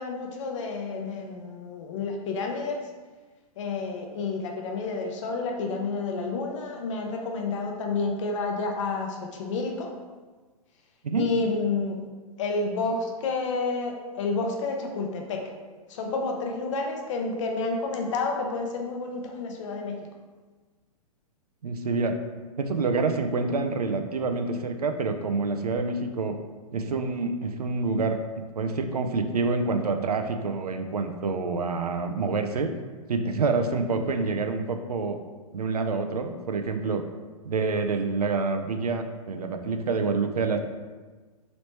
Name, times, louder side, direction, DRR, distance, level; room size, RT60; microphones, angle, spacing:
voice 1, 0.0-2.8 3.6-9.9 11.2-12.0 12.4-15.5 15.9-20.1, left 3 dB, 55° left, 2 dB, 0.7 m, -30 dB
voice 2, 21.6-22.2 22.6-26.4 26.7-28.2 28.6-32.7 33.1-35.2 35.5-37.0 37.4-40.6, right 4 dB, 90° right, 6 dB, 0.4 m, -27 dB
3.1 x 3.0 x 2.9 m, 1.4 s
hypercardioid pair, 120°, 19 cm